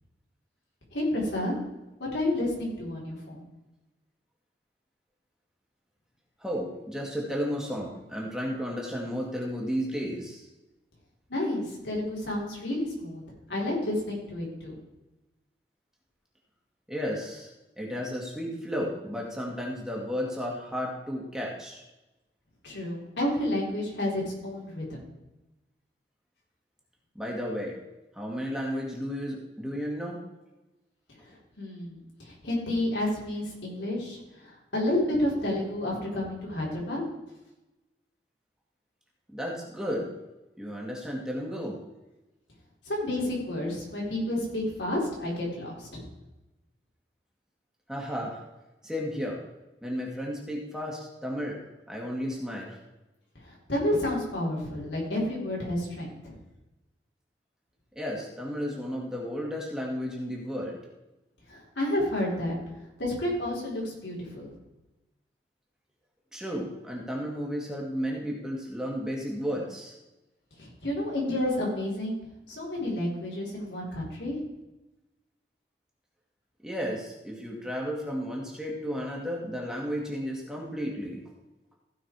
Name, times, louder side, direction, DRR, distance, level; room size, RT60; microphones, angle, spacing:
voice 1, 0.9-1.5 2.0-3.4 11.3-13.2 13.5-14.8 22.6-25.1 31.2-37.0 42.9-46.0 53.4-56.4 61.5-62.6 63.0-64.5 70.6-72.2 72.5-74.4, left 1 dB, 85° left, -3 dB, 4.1 m, -30 dB
voice 2, 6.4-10.5 16.9-17.5 17.8-21.8 27.2-27.8 28.1-30.2 39.3-40.1 40.6-41.8 47.9-48.4 48.8-49.4 49.8-51.6 51.9-52.8 58.0-60.8 66.3-70.0 76.6-81.2, equal, 5° right, -2 dB, 1.9 m, -33 dB
15.5 x 5.8 x 4.7 m, 1.0 s
head